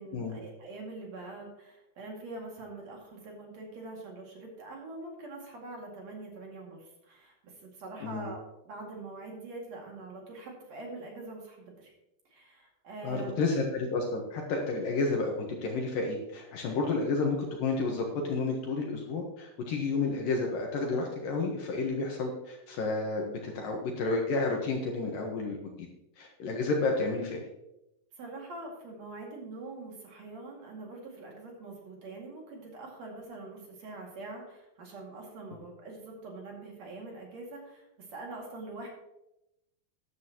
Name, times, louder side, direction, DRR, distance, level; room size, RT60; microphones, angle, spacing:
voice 1, 0.0-11.9 12.3-13.4 28.1-38.9, right 2 dB, 45° right, -1 dB, 2.7 m, -44 dB
voice 2, 13.0-25.9 26.2-27.4, left 3 dB, 65° left, 1 dB, 2.3 m, -31 dB
13.0 x 11.0 x 2.9 m, 0.88 s
omnidirectional pair, 5.2 m